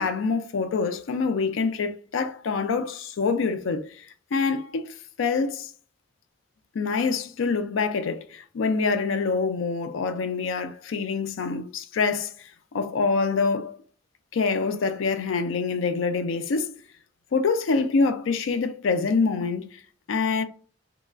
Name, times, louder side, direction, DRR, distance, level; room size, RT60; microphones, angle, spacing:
voice 1, 0.0-4.0 4.3-5.7 6.7-12.5 12.7-13.8 14.3-16.7 17.3-19.8 20.1-20.4, left 4 dB, 85° left, 0.4 m, -25 dB
2.9 x 2.3 x 2.3 m
head